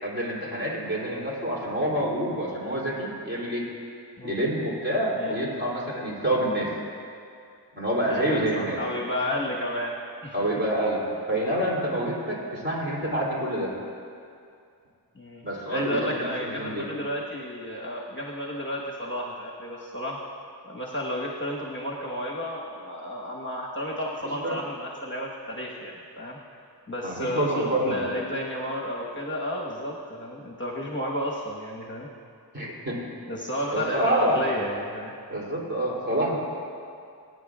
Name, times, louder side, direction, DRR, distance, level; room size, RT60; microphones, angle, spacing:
voice 1, 0.0-3.6 4.2-6.7 7.7-8.8 10.3-13.7 15.4-16.8 24.2-24.6 27.0-28.0 32.5-33.0 33.7-34.4 35.3-36.4, right 1 dB, 25° right, -5 dB, 3.2 m, -27 dB
voice 2, 5.1-5.5 8.1-10.0 10.2-10.5 12.3-12.5 15.1-15.4 15.7-20.2 20.6-26.4 26.9-32.1 33.3-35.1, equal, 30° left, -3 dB, 1.4 m, -32 dB
22.0 x 9.5 x 2.4 m, 2.4 s
wide cardioid pair, 45°, 41 cm